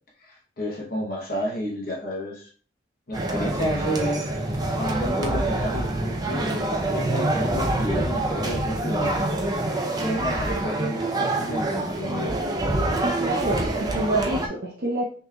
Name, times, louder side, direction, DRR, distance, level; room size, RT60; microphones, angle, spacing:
voice 1, 0.2-2.5 3.1-6.6 6.9-9.2 10.0-12.4, equal, 55° left, -3 dB, 0.9 m, -30 dB
sound 1, 3.1-14.5, right 2 dB, 20° right, 0.5 m, -26 dB
voice 2, 13.0-15.0, right 2 dB, 60° right, -3 dB, 0.8 m, -27 dB
5.6 x 3.1 x 2.3 m, 0.43 s
head